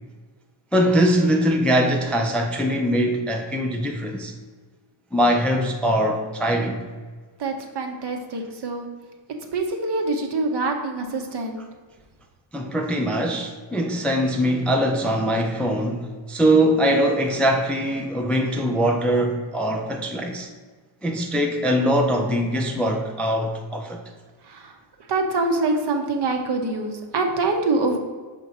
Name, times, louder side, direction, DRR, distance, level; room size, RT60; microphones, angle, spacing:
voice 1, 0.7-4.3 5.1-6.8 12.5-20.5 21.0-24.0, equal, 5° left, 0.3 m, -22 dB
voice 2, 7.4-8.9 9.5-11.6 24.5-24.7 25.1-28.0, right 3 dB, 60° right, 1.0 m, -25 dB
6.1 x 3.0 x 5.4 m
wide cardioid pair, 140°, 46 cm